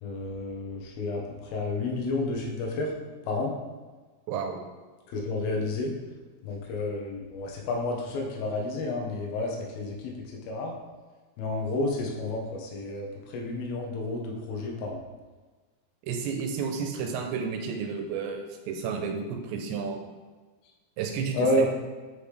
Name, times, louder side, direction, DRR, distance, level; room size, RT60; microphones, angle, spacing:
voice 1, 0.0-2.9 3.2-3.5 5.1-5.9 6.4-10.1 10.5-10.7 11.4-15.0 21.3-21.7, left 2 dB, 70° left, 0 dB, 2.7 m, -30 dB
voice 2, 4.3-4.6 16.1-20.0 21.0-21.6, right 6 dB, 80° right, 3 dB, 2.9 m, -31 dB
7.3 x 5.0 x 3.3 m, 1.3 s
omnidirectional pair, 5.2 m